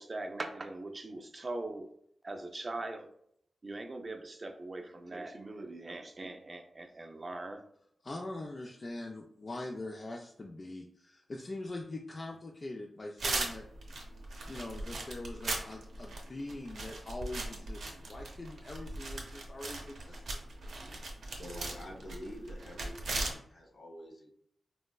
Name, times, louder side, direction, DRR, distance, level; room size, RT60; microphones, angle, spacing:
voice 1, 0.0-1.9 2.2-3.1 3.6-7.7 20.6-21.0, right 2 dB, 40° right, 6 dB, 0.4 m, -41 dB
voice 2, 8.0-13.6 14.5-20.4, left 2 dB, 40° left, 0 dB, 0.3 m, -43 dB
sound 1, 13.2-23.3, right 2 dB, 80° right, 0.6 m, -39 dB
voice 3, 21.0-24.3, equal, 75° left, -1 dB, 1.0 m, -47 dB
4.2 x 2.0 x 2.2 m, 0.70 s
cardioid pair, 65°, 0 cm